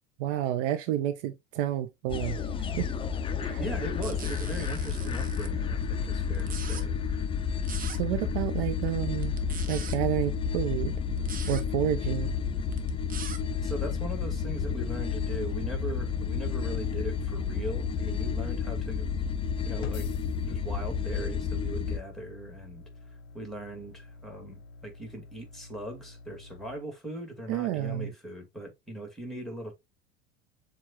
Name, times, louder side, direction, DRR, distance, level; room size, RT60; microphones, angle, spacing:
voice 1, 0.2-2.4 2.8-2.9 3.4-3.6 7.9-9.4 9.7-10.9 11.5-12.3 27.5-28.1, right 12 dB, 55° right, 0.6 m, -30 dB
sound 1, 2.1-22.0, left 6 dB, 15° left, 0.5 m, -31 dB
voice 2, 3.6-7.0 13.6-19.1 19.6-20.1 20.4-22.8 23.3-29.7, right 1 dB, ahead, 2.0 m, -39 dB
sound 2, 4.0-5.5 6.3-6.8 7.6-8.0 9.2-10.0 11.2-11.6 12.7-13.4, right 6 dB, 25° right, 0.9 m, -41 dB
sound 3, 9.0-26.8, left 4 dB, 70° left, 0.6 m, -43 dB
7.1 x 2.5 x 2.8 m
hypercardioid pair, 80°, 33 cm